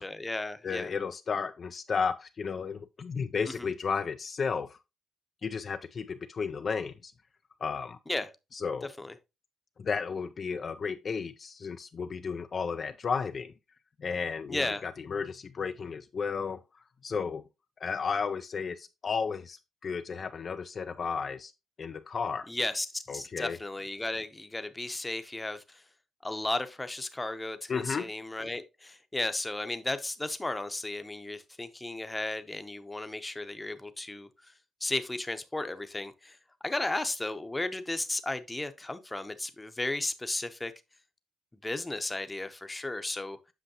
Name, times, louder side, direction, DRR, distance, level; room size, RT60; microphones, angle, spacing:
voice 1, 0.0-0.9 3.5-3.7 8.1-8.3 9.0-9.1 14.5-14.8 22.5-25.8 26.2-34.3 34.8-36.4 36.6-40.7 41.6-43.4, left 2 dB, 15° left, 0.8 m, -34 dB
voice 2, 0.6-4.8 5.4-7.1 7.6-8.0 8.5-8.9 9.8-13.5 14.0-16.6 17.0-17.4 17.8-21.5 21.8-22.5 23.1-23.6 27.7-28.1, left 5 dB, 45° left, 0.4 m, -33 dB
7.9 x 5.6 x 2.8 m
cardioid pair, 90°, 0 cm